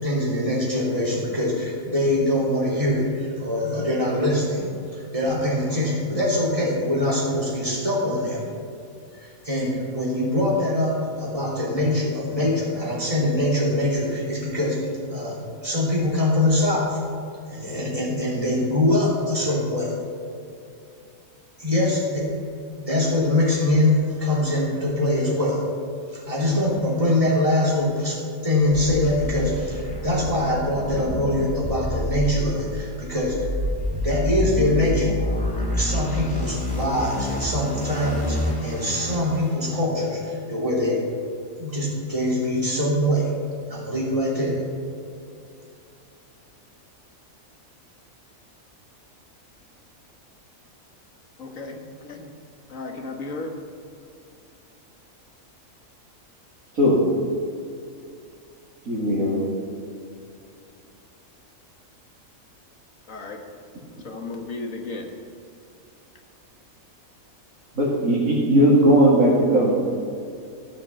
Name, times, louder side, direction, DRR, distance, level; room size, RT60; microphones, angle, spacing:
voice 1, 0.0-8.5 9.2-17.0 17.5-20.0 21.6-22.3 22.8-25.7 26.1-33.5 33.9-35.2 35.8-41.0 41.6-43.4 43.7-44.6, left 1 dB, 25° right, -5 dB, 3.3 m, -23 dB
sound 1, 28.7-39.5, equal, 5° left, 3.2 m, -28 dB
voice 2, 51.4-52.3 52.7-53.5 63.1-63.4 64.0-65.1, left 3 dB, 65° left, 2 dB, 1.8 m, -34 dB
voice 3, 58.9-59.4 67.7-69.7, equal, 70° right, -7 dB, 2.7 m, -18 dB
15.0 x 6.0 x 7.0 m, 2.5 s
omnidirectional pair, 1.5 m